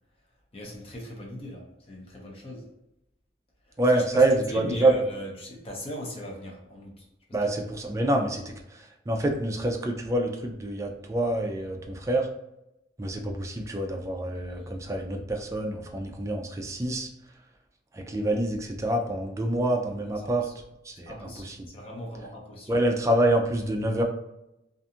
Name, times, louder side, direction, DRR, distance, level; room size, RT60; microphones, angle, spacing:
voice 1, 0.5-2.7 3.7-4.2 4.5-7.1 20.2-20.5 20.9-22.7, left 1 dB, 35° left, 0.7 m, -39 dB
voice 2, 3.8-5.0 7.3-12.3 13.0-17.1 17.9-20.5 20.8-21.7 22.7-24.0, right 1 dB, 15° right, 0.3 m, -26 dB
2.5 x 2.3 x 2.7 m
head